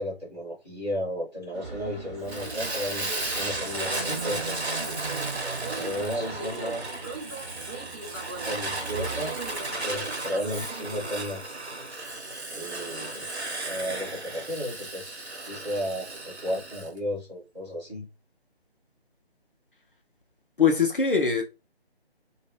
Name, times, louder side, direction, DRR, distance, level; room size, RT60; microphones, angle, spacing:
voice 1, 0.0-4.6 5.8-6.9 8.4-9.4 9.8-11.4 12.5-13.3 13.6-18.1, equal, 5° left, 0.8 m, -33 dB
sound 1, 1.5-11.1, right 4 dB, 25° right, 1.0 m, -38 dB
Fire, 2.3-16.9, right 2 dB, 85° right, 1.1 m, -34 dB
voice 2, 20.6-21.4, left 5 dB, 55° left, 0.6 m, -22 dB
2.8 x 2.2 x 3.2 m
figure-of-eight pair, 155°, 32 cm